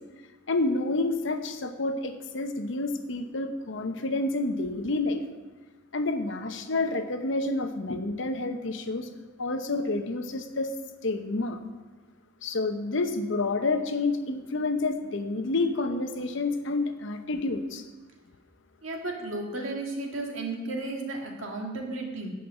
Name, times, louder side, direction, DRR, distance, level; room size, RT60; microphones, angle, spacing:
voice 1, 0.5-5.2 5.9-9.1 9.4-10.7 11.0-11.6 12.4-17.8, left 2 dB, 65° left, 7 dB, 0.9 m, -29 dB
voice 2, 18.8-22.3, right 2 dB, 80° right, 1 dB, 2.0 m, -34 dB
11.0 x 5.3 x 7.9 m, 1.2 s
head